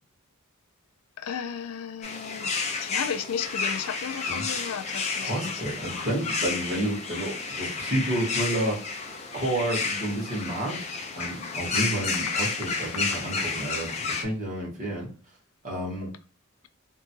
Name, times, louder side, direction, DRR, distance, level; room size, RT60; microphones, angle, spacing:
voice 1, 1.2-2.5 2.8-5.6 6.0-6.1, left 7 dB, 75° left, 0.4 m, -34 dB
sound 1, 2.0-14.2, left 4 dB, 30° left, 0.6 m, -31 dB
voice 2, 5.2-8.9 9.3-10.9 11.2-15.1 15.6-16.1, right 1 dB, 35° right, 1.6 m, -30 dB
3.6 x 2.8 x 2.2 m
head